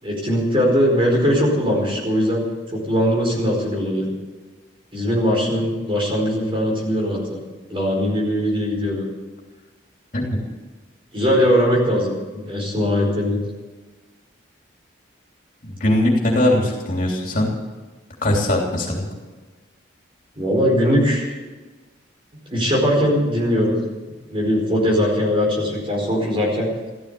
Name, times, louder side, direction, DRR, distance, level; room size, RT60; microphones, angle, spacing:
voice 1, 0.0-4.1 4.9-7.4 7.7-9.0 11.1-13.4 20.3-21.3 22.5-23.8 24.3-26.7, equal, 25° right, -1 dB, 4.9 m, -20 dB
voice 2, 15.6-17.5 18.2-19.1, left 1 dB, 40° left, 0 dB, 3.2 m, -20 dB
15.0 x 14.0 x 7.0 m, 1.3 s
head